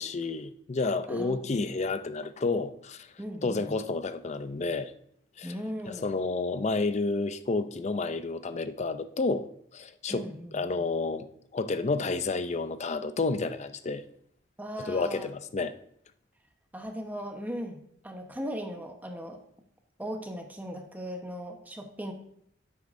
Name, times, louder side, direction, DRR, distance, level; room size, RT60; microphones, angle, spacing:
voice 1, 0.0-3.1 3.4-4.9 5.4-5.5 5.8-11.3 11.5-14.0 14.8-15.7, left 3 dB, 35° left, 0.5 m, -30 dB
voice 2, 1.1-1.7 3.2-3.8 5.4-6.1 10.1-10.6 14.6-15.3 16.7-19.4 20.0-22.1, equal, 10° right, 1.0 m, -38 dB
10.5 x 8.4 x 2.6 m
head